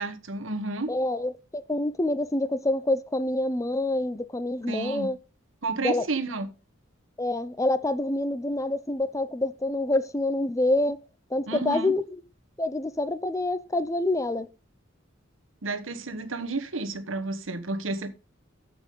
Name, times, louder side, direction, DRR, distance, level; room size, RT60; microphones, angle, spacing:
voice 1, 0.0-0.9 4.7-5.1 5.6-6.5 11.5-11.9 15.6-18.1, right 3 dB, 70° right, 1.3 m, -31 dB
voice 2, 0.9-5.2 5.8-6.0 7.2-11.0 11.3-12.0 12.6-14.5, left 2 dB, 15° left, 0.6 m, -27 dB
14.0 x 6.0 x 3.8 m
head